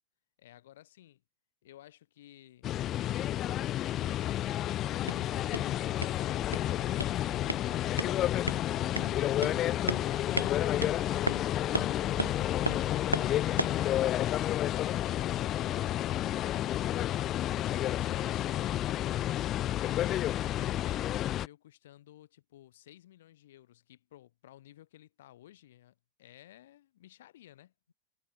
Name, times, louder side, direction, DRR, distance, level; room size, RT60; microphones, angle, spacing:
voice 1, 0.4-1.2 1.6-2.7 3.8-7.2 17.9-18.7 19.8-27.7, left 13 dB, 55° left, 4.9 m, -56 dB
sound 1, 2.6-21.5, left 13 dB, 30° left, 0.4 m, -30 dB
sound 2, 4.8-13.9, equal, 90° right, 0.7 m, -37 dB
voice 2, 7.2-7.3, left 5 dB, 75° left, 3.9 m, -59 dB
figure-of-eight pair, 90°, 0 cm